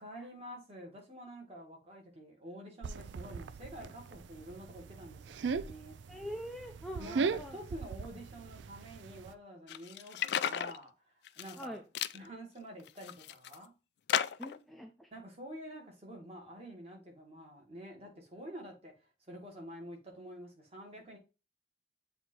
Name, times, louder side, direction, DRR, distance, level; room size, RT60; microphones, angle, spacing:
voice 1, 0.0-5.9 7.0-11.8 12.1-13.7 15.1-21.2, equal, 35° right, 2.0 m, -48 dB
sound 1, 2.8-9.3, right 5 dB, 75° right, 0.4 m, -39 dB
voice 2, 6.1-7.6 11.6-11.8 14.4-15.1, equal, ahead, 0.5 m, -43 dB
sound 2, 9.7-10.8 11.3-11.7 12.0-12.2 12.8-13.6 14.1-14.6, left 9 dB, 60° left, 0.3 m, -34 dB
7.8 x 2.9 x 4.4 m
head